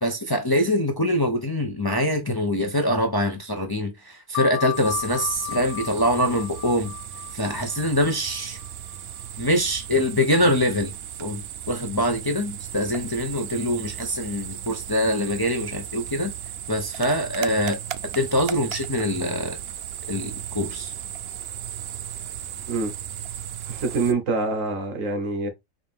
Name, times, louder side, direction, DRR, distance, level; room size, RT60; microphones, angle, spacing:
voice 1, 0.0-6.9 7.3-8.6 9.4-10.9 11.2-16.3 16.7-17.8 18.1-19.6 20.1-20.9, left 1 dB, 25° left, 0.5 m, -24 dB
sound 1, 4.3-9.5, left 17 dB, 70° left, 0.9 m, -35 dB
sound 2, 4.7-24.1, right 10 dB, 65° right, 0.6 m, -36 dB
voice 2, 23.7-25.5, right 3 dB, 85° right, 1.5 m, -25 dB
4.8 x 2.6 x 3.4 m
omnidirectional pair, 1.3 m